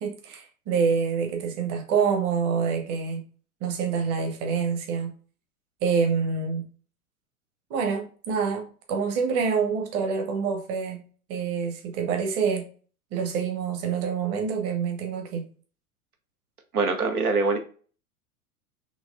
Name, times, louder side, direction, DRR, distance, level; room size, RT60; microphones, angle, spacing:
voice 1, 0.0-3.2 3.6-5.1 5.8-6.6 7.7-11.0 11.3-12.6 13.1-15.4, right 6 dB, 35° right, 1.1 m, -26 dB
voice 2, 16.7-17.6, right 3 dB, 80° right, 1.0 m, -23 dB
6.2 x 2.9 x 2.4 m
figure-of-eight pair, 95°, 44 cm